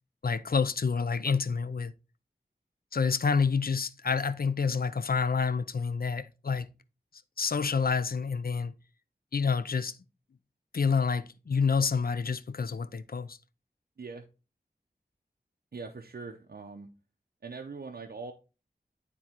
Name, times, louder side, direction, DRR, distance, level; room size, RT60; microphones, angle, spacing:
voice 1, 0.2-1.9 2.9-6.7 7.4-8.7 9.3-10.0 10.7-13.4, left 5 dB, 65° left, 0.5 m, -28 dB
voice 2, 15.7-16.9 17.4-18.3, right 4 dB, 70° right, 0.7 m, -42 dB
11.0 x 3.7 x 2.9 m
wide cardioid pair, 65°, 17 cm